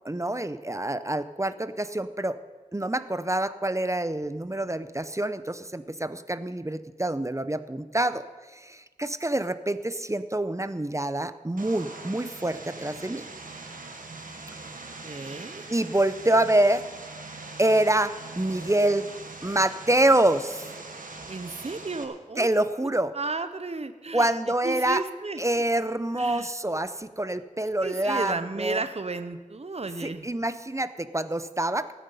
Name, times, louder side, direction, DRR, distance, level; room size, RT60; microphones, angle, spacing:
voice 1, 0.0-2.4 2.7-8.2 8.5-13.2 15.7-16.8 17.6-19.1 19.4-20.7 22.4-23.1 24.1-25.0 25.4-28.8 30.0-31.9, right 1 dB, 20° right, 12 dB, 0.6 m, -26 dB
Vehicle, 11.6-22.0, right 3 dB, 85° right, 1.5 m, -42 dB
voice 2, 15.0-15.6 21.3-22.5 23.1-24.3 24.6-25.4 26.1-26.5 27.8-30.3, right 3 dB, 50° right, 10 dB, 0.8 m, -33 dB
17.0 x 9.5 x 5.6 m, 1.3 s
wide cardioid pair, 55°, 14 cm